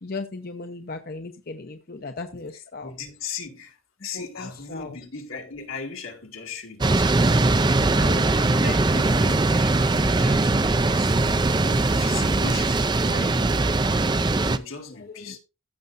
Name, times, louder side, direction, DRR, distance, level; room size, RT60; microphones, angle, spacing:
voice 1, 0.0-2.9 4.1-5.0 15.0-15.4, left 3 dB, 45° left, 0.7 m, -37 dB
voice 2, 2.8-7.4 7.9-13.6 14.4-15.4, left 5 dB, 80° left, 2.2 m, -38 dB
sound 1, 6.8-14.6, right 2 dB, 20° right, 0.4 m, -21 dB
15.0 x 6.7 x 2.6 m
head